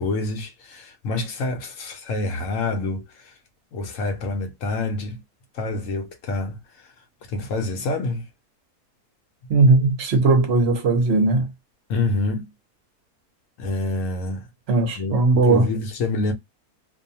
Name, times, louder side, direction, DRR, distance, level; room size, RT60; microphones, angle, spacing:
voice 1, 0.0-3.4 3.7-5.2 5.5-6.9 7.3-8.3 11.9-12.5 13.6-14.5 15.0-16.3, left 2 dB, 65° left, 0.9 m, -27 dB
voice 2, 9.5-11.5 14.7-15.7, right 3 dB, 55° right, 0.8 m, -18 dB
2.6 x 2.2 x 2.6 m
omnidirectional pair, 1.6 m